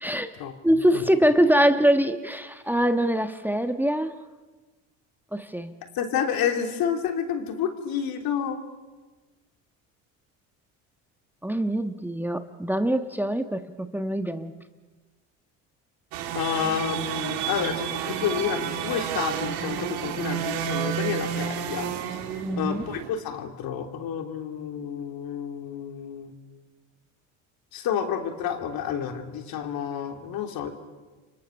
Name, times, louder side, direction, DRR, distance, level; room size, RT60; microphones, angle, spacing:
voice 1, 0.0-0.3 0.6-4.2 5.3-5.7 11.4-14.5 22.4-22.8, equal, 5° right, 8 dB, 1.3 m, -23 dB
voice 2, 5.9-8.6 16.3-22.2 22.6-26.3 27.7-30.7, left 8 dB, 65° left, 5 dB, 3.2 m, -30 dB
sound 1, 16.1-23.1, right 9 dB, 80° right, 2.4 m, -30 dB
29.5 x 24.5 x 6.6 m, 1.3 s
supercardioid pair, 80°, 38 cm